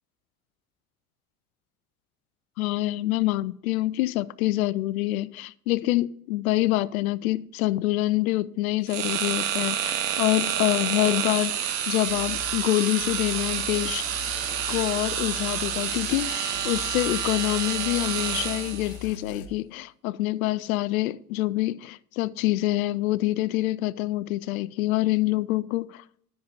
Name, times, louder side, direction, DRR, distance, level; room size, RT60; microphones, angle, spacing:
voice 1, 2.6-14.1 14.7-26.0, left 17 dB, 70° left, 0.5 m, -26 dB
sound 1, 8.9-19.0, right 9 dB, 60° right, 1.3 m, -29 dB
sound 2, 12.1-12.6 13.0-16.3 16.5-19.5, left 8 dB, 40° left, 1.7 m, -41 dB
10.0 x 6.6 x 5.3 m
figure-of-eight pair, 70°, 44 cm